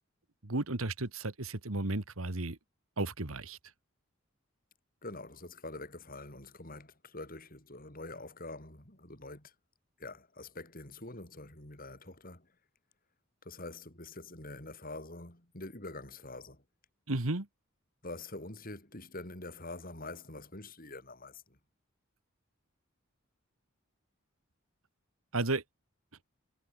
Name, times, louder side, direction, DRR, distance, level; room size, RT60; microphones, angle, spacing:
voice 1, 0.4-2.6 3.0-3.6 17.1-17.5 25.3-25.6, right 2 dB, 90° right, 1.9 m, -33 dB
voice 2, 5.0-9.5 10.0-12.5 13.4-16.6 18.0-21.6, left 2 dB, 45° left, 5.9 m, -45 dB
head